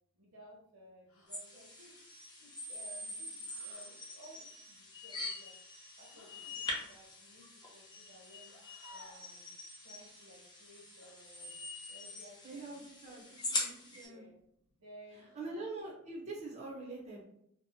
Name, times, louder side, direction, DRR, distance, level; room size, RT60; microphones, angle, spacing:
voice 1, 0.2-1.9 2.4-4.4 4.7-5.5 6.0-7.5 7.7-8.5 8.9-9.5 9.8-11.6 11.9-13.2 14.0-14.3 14.8-15.7, right 1 dB, 80° right, -1 dB, 0.8 m, -57 dB
sound 1, 1.1-1.5 3.4-4.0 6.1-6.6 8.4-9.4 11.0-11.2 13.3-13.8 15.2-15.7, left 1 dB, 70° left, 0.7 m, -59 dB
sound 2, 1.3-14.1, left 2 dB, 20° left, 0.5 m, -43 dB
voice 2, 12.4-14.2 15.4-17.2, right 2 dB, 35° right, -4 dB, 0.5 m, -44 dB
2.7 x 2.0 x 2.6 m, 0.75 s
head